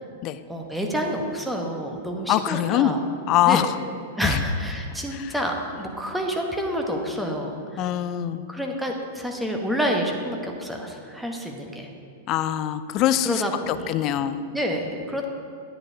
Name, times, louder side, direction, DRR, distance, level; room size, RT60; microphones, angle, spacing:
voice 1, 0.5-3.0 3.4-3.7 4.2-7.8 8.5-11.9 13.2-14.1 14.5-15.2, equal, ahead, 1 dB, 1.0 m, -28 dB
voice 2, 2.3-3.0 3.3-3.8 4.2-4.4 5.1-5.3 7.8-8.4 12.3-14.4, left 12 dB, 40° left, 13 dB, 0.4 m, -23 dB
9.7 x 8.9 x 2.8 m, 2.4 s
hypercardioid pair, 105°, 0 cm